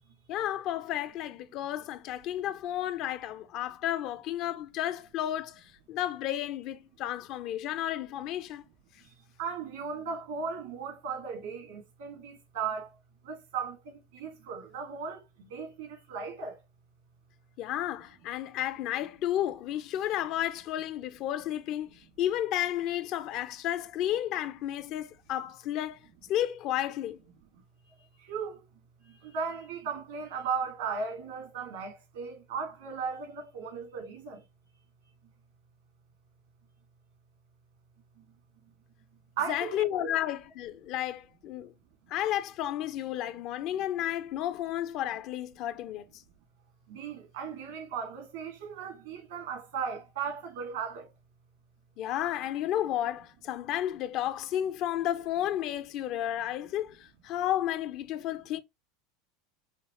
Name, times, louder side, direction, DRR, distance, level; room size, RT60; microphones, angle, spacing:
voice 1, 0.3-8.6 17.6-26.0 26.3-27.2 39.5-41.7 42.1-46.2 52.0-58.6, left 12 dB, 50° left, 0.5 m, -32 dB
voice 2, 9.4-12.9 13.3-13.8 14.1-16.6 28.3-28.6 29.1-34.4 39.4-40.1 46.9-51.1, right 6 dB, 80° right, 2.0 m, -36 dB
5.1 x 2.5 x 3.0 m
supercardioid pair, 110°, 0 cm